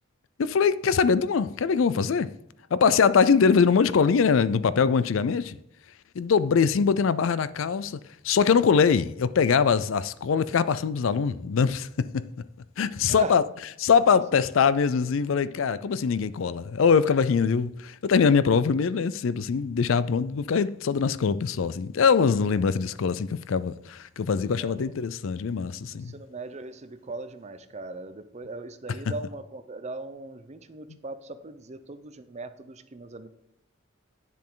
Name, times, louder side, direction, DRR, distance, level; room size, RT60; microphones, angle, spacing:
voice 1, 0.4-2.3 2.7-5.6 6.2-8.0 8.2-12.3 12.8-13.4 13.8-26.1, left 6 dB, 70° left, 0.4 m, -23 dB
voice 2, 24.6-24.9 25.9-33.3, right 3 dB, 35° right, 0.6 m, -39 dB
9.9 x 7.3 x 3.8 m
head